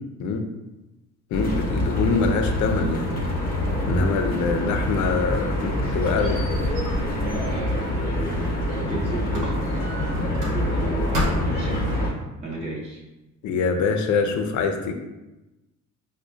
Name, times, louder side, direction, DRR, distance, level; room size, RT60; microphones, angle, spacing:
voice 1, 1.3-3.1 3.8-6.4 13.4-14.9, left 4 dB, 70° left, 6 dB, 0.5 m, -24 dB
sound 1, 1.3-12.1, left 1 dB, 30° left, 0.9 m, -26 dB
Squeak, 5.1-8.9 9.3-10.8 11.1-11.7, left 1 dB, 90° right, 1.0 m, -33 dB
voice 2, 7.0-9.6 10.5-13.0, right 2 dB, 20° right, -6 dB, 0.7 m, -34 dB
4.8 x 2.2 x 2.5 m, 1.0 s
cardioid pair, 90°, 30 cm